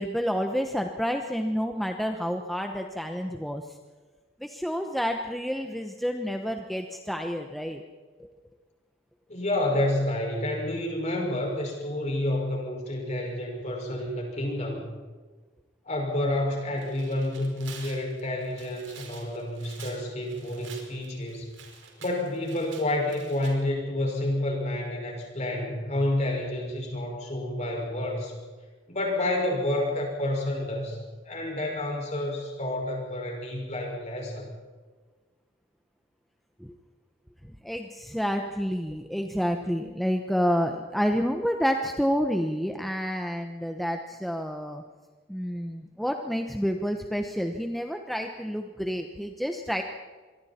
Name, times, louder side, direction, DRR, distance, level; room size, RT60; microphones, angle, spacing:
voice 1, 0.0-3.6 4.4-7.8 36.6-36.7 37.6-44.8 45.3-49.8, equal, ahead, 4 dB, 1.0 m, -29 dB
voice 2, 9.3-14.9 15.9-21.5 22.0-28.4 28.9-31.0 31.2-34.5, left 1 dB, 35° left, 0 dB, 5.8 m, -29 dB
Tearing, 16.6-23.5, right 6 dB, 85° right, 5.1 m, -48 dB
26.0 x 22.5 x 4.4 m, 1.4 s
head